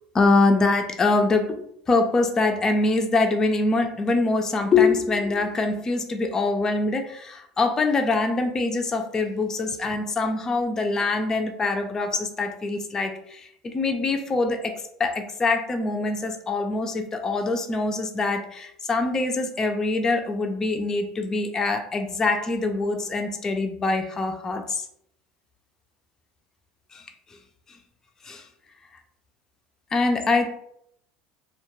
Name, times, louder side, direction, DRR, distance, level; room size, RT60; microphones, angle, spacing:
voice 1, 0.1-24.9 26.9-27.0 28.2-28.4 29.9-30.6, left 3 dB, 25° left, 5 dB, 0.4 m, -24 dB
2.2 x 2.2 x 3.0 m, 0.72 s
supercardioid pair, 100°, 2 cm